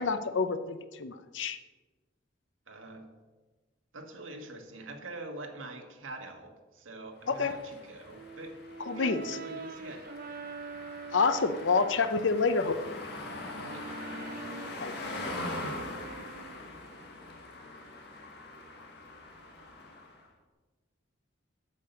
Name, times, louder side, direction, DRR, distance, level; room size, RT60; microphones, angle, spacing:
voice 1, 0.0-1.6 7.3-7.5 8.9-9.4 11.1-13.0 14.8-14.9, left 4 dB, 70° left, 10 dB, 0.7 m, -28 dB
voice 2, 2.7-3.1 3.9-8.6 8.9-10.1 13.7-13.9, right 2 dB, 85° right, 3 dB, 1.5 m, -45 dB
sound 1, 7.3-20.3, left 2 dB, 55° left, 1.6 m, -43 dB
Brass instrument, 8.1-12.1 12.6-16.7, right 4 dB, 50° right, 0.5 m, -44 dB
8.3 x 6.7 x 6.9 m, 1.2 s
head